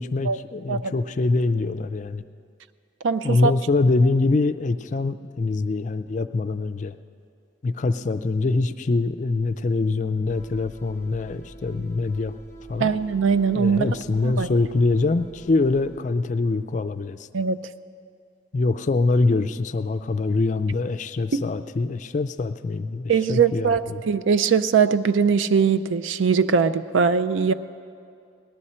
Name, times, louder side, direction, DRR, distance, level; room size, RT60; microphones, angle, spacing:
voice 1, 0.0-2.2 3.2-7.0 7.6-12.3 12.7-12.9 13.5-17.2 18.5-24.0, left 3 dB, 40° left, 11 dB, 0.3 m, -24 dB
voice 2, 3.0-3.5 12.8-14.0 14.2-14.5 17.3-17.6 21.3-21.4 23.1-27.5, right 6 dB, 80° right, 12 dB, 0.4 m, -21 dB
sound 1, 10.3-16.0, right 2 dB, 40° right, 1.4 m, -45 dB
18.5 x 11.0 x 4.3 m, 2.4 s
head